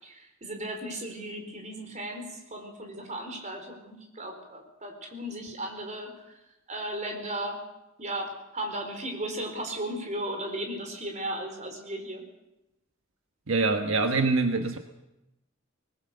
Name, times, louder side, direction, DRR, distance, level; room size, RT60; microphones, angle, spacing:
voice 1, 0.0-6.4 6.7-7.6 8.0-12.2, right 1 dB, 35° right, 3 dB, 4.4 m, -36 dB
voice 2, 13.5-14.8, right 3 dB, 80° right, 5 dB, 1.4 m, -24 dB
20.5 x 20.5 x 6.7 m, 0.93 s
head